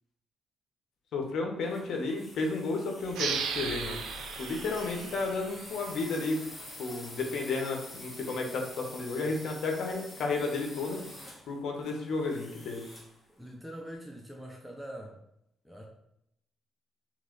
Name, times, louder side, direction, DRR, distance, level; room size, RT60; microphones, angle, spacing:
voice 1, 1.1-4.0 4.4-6.4 6.8-11.0 11.5-12.8, left 3 dB, 70° left, 2 dB, 0.9 m, -32 dB
sound 1, 1.6-13.2, left 1 dB, 20° left, 1.2 m, -47 dB
sound 2, 3.1-6.4, right 6 dB, 80° right, 0.4 m, -36 dB
voice 2, 13.3-15.2 15.6-15.8, equal, ahead, 1 dB, 0.5 m, -43 dB
3.3 x 3.1 x 3.8 m, 0.77 s
cardioid pair, 90°, 0 cm